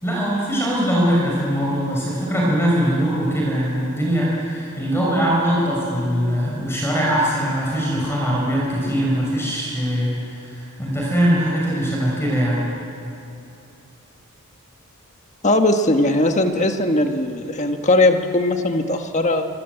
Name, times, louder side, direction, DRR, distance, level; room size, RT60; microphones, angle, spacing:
voice 1, 0.0-12.6, equal, 10° left, -3 dB, 5.5 m, -21 dB
voice 2, 15.4-19.4, left 2 dB, 30° left, 5 dB, 1.6 m, -19 dB
25.5 x 25.0 x 8.1 m, 2.9 s
head